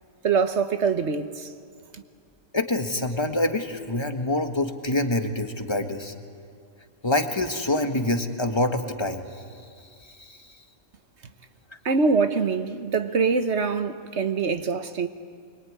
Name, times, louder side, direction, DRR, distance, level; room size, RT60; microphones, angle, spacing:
voice 1, 0.2-1.5 1.9-2.0 11.8-15.1, right 5 dB, 60° right, 1.4 m, -24 dB
voice 2, 2.5-6.1 7.0-9.3 10.2-10.4, left 2 dB, 20° left, 1.6 m, -26 dB
24.5 x 22.5 x 9.5 m
omnidirectional pair, 1.4 m